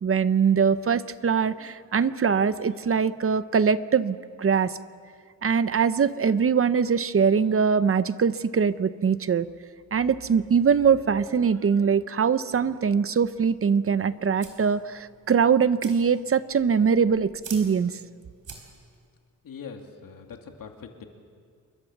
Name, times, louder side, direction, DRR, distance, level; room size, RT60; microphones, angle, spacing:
voice 1, 0.0-4.8 5.4-9.5 9.9-18.0, right 6 dB, 40° right, 14 dB, 0.7 m, -22 dB
sound 1, 13.3-19.1, right 5 dB, 65° right, 4.4 m, -48 dB
voice 2, 19.4-21.1, left 6 dB, 80° left, 4 dB, 2.6 m, -42 dB
29.0 x 22.5 x 7.3 m, 2.1 s
wide cardioid pair, 125°, 33 cm